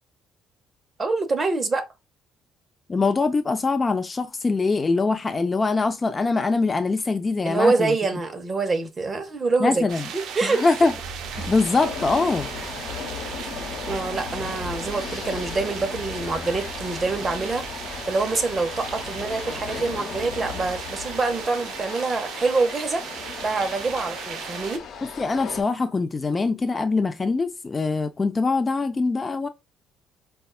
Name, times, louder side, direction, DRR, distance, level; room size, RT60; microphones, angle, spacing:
voice 1, 1.0-1.9 7.4-9.8 10.1-10.6 13.8-17.6 18.1-23.0 23.4-24.8, right 3 dB, 25° right, 0.7 m, -25 dB
voice 2, 2.9-7.9 9.6-10.1 10.4-10.9 11.5-12.5 25.0-29.5, left 3 dB, 25° left, 0.4 m, -23 dB
sound 1, 9.9-24.8, right 7 dB, 75° right, 0.6 m, -36 dB
sound 2, 11.3-25.6, left 6 dB, 70° left, 1.1 m, -36 dB
5.2 x 2.3 x 2.3 m
cardioid pair, 125°, 0 cm